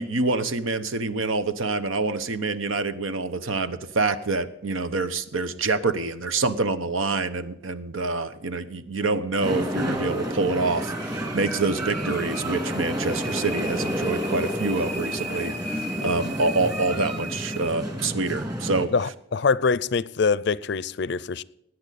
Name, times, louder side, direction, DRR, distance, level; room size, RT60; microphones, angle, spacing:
voice 1, 0.0-18.9, right 3 dB, 85° right, 1.0 m, -26 dB
sound 1, 9.4-18.9, equal, 20° right, 2.1 m, -29 dB
voice 2, 18.9-21.4, left 5 dB, 55° left, 0.5 m, -24 dB
20.0 x 9.6 x 4.1 m
head